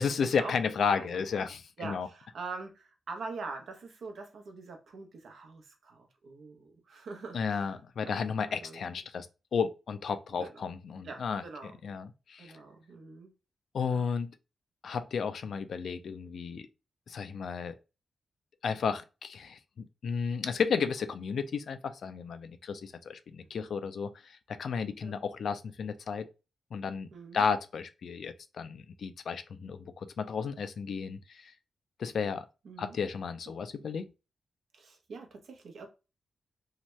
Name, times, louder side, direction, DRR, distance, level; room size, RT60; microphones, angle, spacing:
voice 1, 0.0-2.1 7.3-9.3 9.5-11.4 11.8-12.5 13.7-14.3 14.8-16.7 17.1-17.7 18.6-26.3 26.7-27.1 27.3-31.5 32.0-32.5 32.8-34.1, left 6 dB, 75° left, 0.3 m, -33 dB
voice 2, 0.9-1.5 1.8-7.7 8.0-8.2 8.5-8.8 10.4-10.7 11.0-11.8 12.4-13.3 13.9-14.0 23.6-23.7 25.0-25.2 27.1-27.4 32.6-33.0 33.5-33.6 33.9-34.1 34.7-35.9, right 4 dB, 80° right, 0.7 m, -44 dB
2.8 x 2.2 x 3.0 m
cardioid pair, 70°, 0 cm